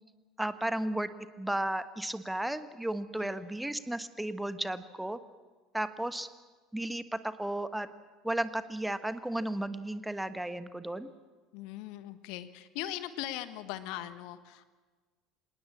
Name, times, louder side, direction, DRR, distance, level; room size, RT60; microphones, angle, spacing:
voice 1, 0.4-1.1 1.4-5.2 5.7-6.3 6.7-7.9 8.2-11.1, right 1 dB, 5° right, 12 dB, 1.3 m, -34 dB
voice 2, 11.5-14.7, left 13 dB, 55° left, 13 dB, 1.2 m, -40 dB
26.5 x 19.0 x 7.3 m, 1.4 s
figure-of-eight pair, 65°, 0 cm